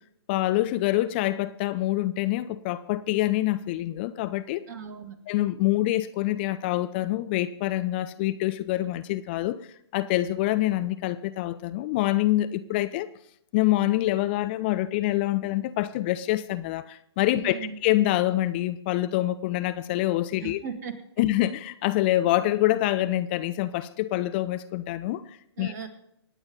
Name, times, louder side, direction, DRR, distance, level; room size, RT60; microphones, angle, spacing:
voice 1, 0.3-4.6 5.3-9.6 9.9-13.1 13.5-20.6 21.2-25.7, left 15 dB, 25° left, 0.4 m, -26 dB
voice 2, 4.7-5.1 17.3-17.7 20.4-20.9 25.6-25.9, right 6 dB, 40° right, 2.1 m, -37 dB
26.5 x 9.0 x 3.9 m
figure-of-eight pair, 125°, 14 cm